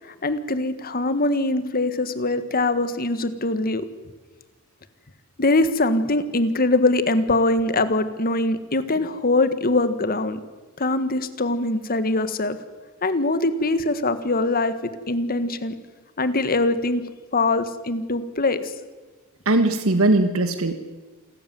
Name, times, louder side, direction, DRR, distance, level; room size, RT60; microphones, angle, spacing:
voice 1, 0.2-3.9 5.4-10.4 10.8-12.6 13.0-14.7 15.1-15.7 16.2-17.0 17.3-18.6, left 2 dB, 45° left, 11 dB, 1.7 m, -22 dB
voice 2, 19.4-20.7, right 2 dB, 75° right, 9 dB, 1.5 m, -19 dB
28.0 x 14.0 x 9.5 m, 1.3 s
head